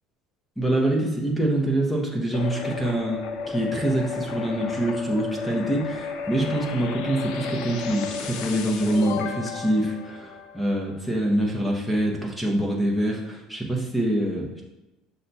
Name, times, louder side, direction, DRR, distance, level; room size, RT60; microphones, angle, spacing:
voice 1, 0.6-14.6, right 1 dB, ahead, -1 dB, 0.6 m, -25 dB
sound 1, 2.3-11.0, left 5 dB, 65° left, 0.4 m, -33 dB
5.6 x 2.2 x 3.9 m, 0.99 s
cardioid pair, 165°, 0 cm